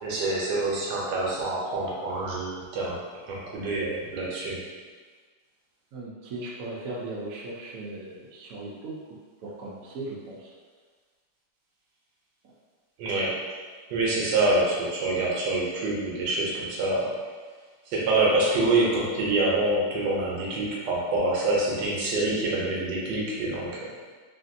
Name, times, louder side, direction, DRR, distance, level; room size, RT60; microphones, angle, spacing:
voice 1, 0.0-3.0 3.3-4.6 13.0-13.4 13.9-17.2 17.9-23.9, right 2 dB, 70° right, -4 dB, 1.2 m, -26 dB
voice 2, 5.9-9.0 9.4-10.5, right 2 dB, 90° right, -3 dB, 0.7 m, -37 dB
3.2 x 2.5 x 2.5 m, 1.5 s
omnidirectional pair, 2.2 m